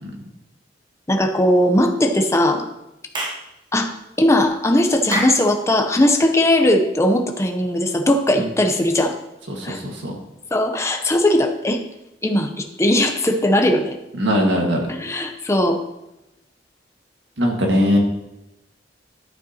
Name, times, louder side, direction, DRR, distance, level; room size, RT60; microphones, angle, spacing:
voice 1, 1.1-2.6 3.7-3.9 4.2-9.1 9.6-9.8 10.5-11.8 12.2-13.9 15.0-15.8, left 1 dB, 15° left, 5 dB, 0.7 m, -18 dB
Clapping / Chirp tweet, 3.1-3.5 5.1-5.5, right 1 dB, 25° right, 0.9 m, -25 dB
voice 2, 9.5-10.1 14.2-14.9 17.4-18.0, equal, 85° right, 1 dB, 1.7 m, -20 dB
11.5 x 6.7 x 2.9 m, 0.93 s
head